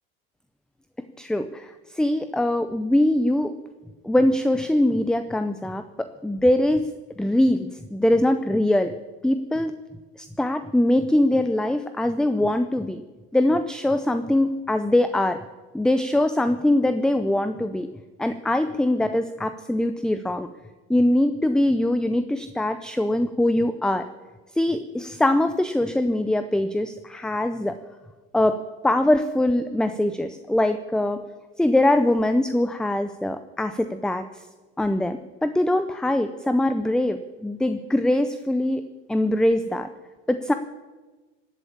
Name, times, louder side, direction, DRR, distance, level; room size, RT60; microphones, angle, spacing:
voice 1, 1.2-3.6 4.0-6.9 7.2-8.9 9.2-9.8 10.2-13.0 13.3-15.4 15.7-17.9 18.2-20.5 20.9-24.0 24.5-27.8 28.3-28.6 28.8-31.2 31.6-34.5 34.8-39.9 40.3-40.5, left 1 dB, ahead, 10 dB, 0.5 m, -22 dB
17.5 x 8.2 x 8.6 m, 1.2 s
supercardioid pair, 110°, 30 cm